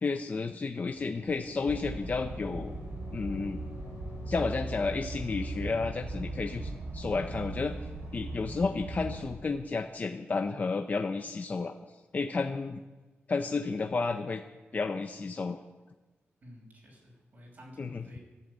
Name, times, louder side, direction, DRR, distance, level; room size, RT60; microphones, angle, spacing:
voice 1, 0.0-2.7 3.1-3.6 4.3-7.8 8.1-11.7 12.1-12.8 13.3-14.4 14.7-15.6 17.8-18.1, left 4 dB, 35° left, 5 dB, 0.7 m, -32 dB
sound 1, 0.9-6.8, left 4 dB, 80° left, 2.6 m, -48 dB
sound 2, 1.6-9.3, right 2 dB, 70° right, 4.0 m, -39 dB
voice 2, 16.4-18.3, equal, 40° right, -1 dB, 5.7 m, -51 dB
14.0 x 11.5 x 8.3 m, 1.2 s
wide cardioid pair, 155°, 5 cm